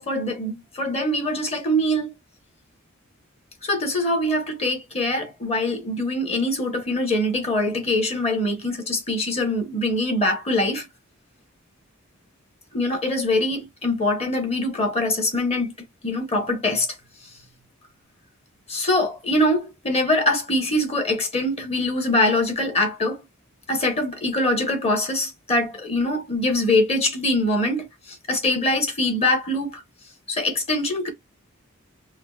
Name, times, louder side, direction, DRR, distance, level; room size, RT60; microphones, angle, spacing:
voice 1, 0.0-2.1 3.6-10.9 12.7-15.7 16.0-16.9 18.7-23.2 23.7-29.8 30.3-31.1, left 1 dB, 30° left, 0.9 m, -23 dB
3.5 x 2.0 x 2.3 m
head